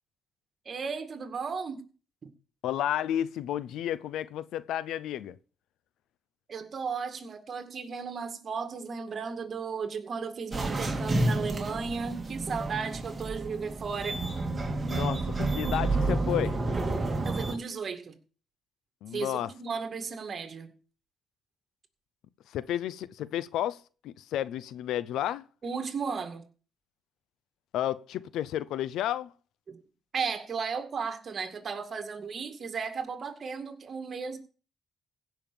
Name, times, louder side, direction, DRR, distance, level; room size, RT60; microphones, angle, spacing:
voice 1, 0.7-1.9 2.2-2.3 6.5-14.3 17.2-18.2 19.1-20.7 25.6-26.4 29.7-29.8 30.1-34.4, right 5 dB, 45° right, 2.1 m, -35 dB
voice 2, 2.6-5.4 14.8-16.6 19.0-19.5 22.5-25.4 27.7-29.3, left 11 dB, 85° left, 0.6 m, -32 dB
sound 1, 10.5-17.5, right 2 dB, 25° right, 2.4 m, -30 dB
16.0 x 5.8 x 6.9 m
cardioid pair, 90°, 0 cm